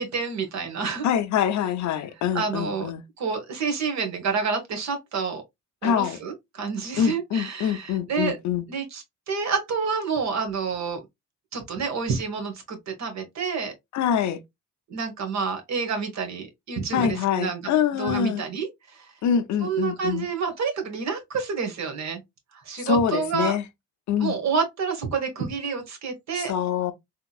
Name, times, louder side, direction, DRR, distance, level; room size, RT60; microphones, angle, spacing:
voice 1, 0.0-1.1 2.3-2.9 3.2-5.4 5.8-8.4 8.7-11.0 11.5-13.7 14.9-17.6 18.0-19.1 19.6-22.2 22.6-23.5 24.2-26.5, right 5 dB, 65° right, 1.4 m, -28 dB
voice 2, 1.0-3.0 5.8-6.2 7.0-8.7 13.9-14.4 16.9-18.4 19.2-20.3 22.8-23.6 24.1-24.4 26.4-26.9, left 8 dB, 70° left, 0.7 m, -25 dB
3.5 x 2.9 x 2.3 m
cardioid pair, 90°, 30 cm